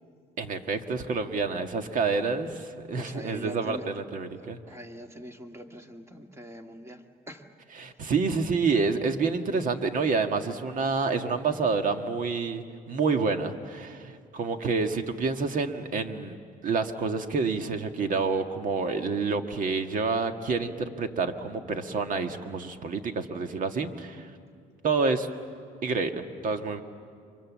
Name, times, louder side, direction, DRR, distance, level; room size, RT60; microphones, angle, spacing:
voice 1, 0.4-4.6 7.8-16.4 16.6-24.3 24.8-25.3 25.8-26.8, right 4 dB, 50° right, 6 dB, 1.8 m, -28 dB
voice 2, 3.0-3.9 4.4-7.5 8.0-8.1, equal, 15° right, 4 dB, 1.9 m, -43 dB
30.0 x 25.0 x 7.4 m, 2.3 s
cardioid pair, 110°, 17 cm